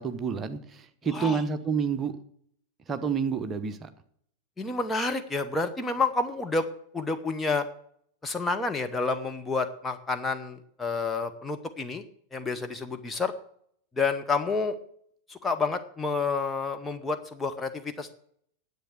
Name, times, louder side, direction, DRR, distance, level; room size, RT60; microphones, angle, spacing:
voice 1, 0.0-2.1 2.9-3.9, right 6 dB, 20° right, 8 dB, 1.1 m, -29 dB
voice 2, 4.6-6.6 6.9-7.6 8.2-12.0 12.3-13.3 14.0-14.8 15.3-18.1, left 4 dB, 10° left, 6 dB, 1.0 m, -29 dB
10.0 x 8.0 x 8.1 m, 0.66 s
figure-of-eight pair, 90°, 0 cm